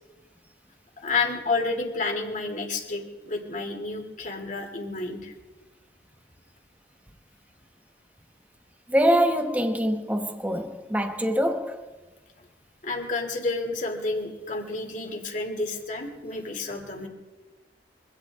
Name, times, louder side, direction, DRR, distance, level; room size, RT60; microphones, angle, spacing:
voice 1, 1.0-5.3 12.8-17.1, left 3 dB, 45° left, 2.9 m, -30 dB
voice 2, 8.9-11.8, equal, 10° right, 1.1 m, -24 dB
24.0 x 16.0 x 3.6 m
head